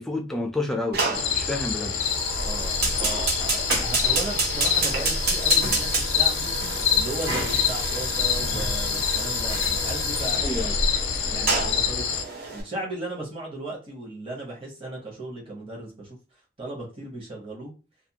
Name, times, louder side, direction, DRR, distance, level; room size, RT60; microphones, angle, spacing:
voice 1, 0.0-2.0 10.4-10.7, left 2 dB, ahead, 0.4 m, -29 dB
Fire, 0.9-12.6, right 3 dB, 55° right, 0.7 m, -30 dB
sound 1, 1.1-12.2, left 8 dB, 80° left, 0.4 m, -26 dB
sound 2, 2.3-12.0, equal, 70° right, 1.4 m, -34 dB
voice 2, 2.4-6.5 6.9-10.8 11.2-16.2 16.6-17.7, right 2 dB, 30° right, 0.9 m, -36 dB
2.4 x 2.2 x 2.8 m
head